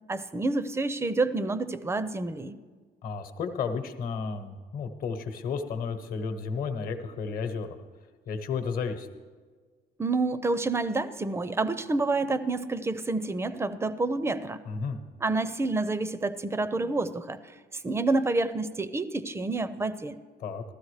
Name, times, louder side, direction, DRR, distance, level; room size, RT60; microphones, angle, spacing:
voice 1, 0.1-2.6 10.0-14.6 15.2-17.4 17.7-20.2, right 3 dB, 15° right, 14 dB, 0.5 m, -28 dB
voice 2, 3.0-7.7 8.3-9.1 14.6-15.0 20.4-20.6, left 5 dB, 60° left, 7 dB, 1.0 m, -32 dB
15.0 x 12.5 x 3.2 m, 1.5 s
cardioid pair, 110°, 17 cm